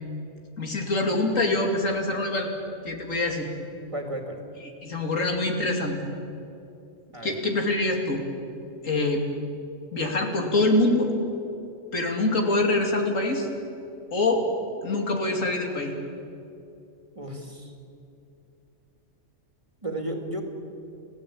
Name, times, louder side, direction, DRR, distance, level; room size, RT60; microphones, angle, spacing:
voice 1, 0.6-2.5 2.8-3.5 4.8-6.0 7.2-8.3 8.8-9.3 9.9-11.1 11.9-13.5 14.1-14.5 14.8-15.9, left 2 dB, 90° left, 2 dB, 3.2 m, -24 dB
voice 2, 3.9-4.4 7.1-7.4 17.1-17.7 19.8-20.4, right 1 dB, 25° right, 3 dB, 2.8 m, -33 dB
29.5 x 16.0 x 8.7 m, 2.7 s
omnidirectional pair, 1.3 m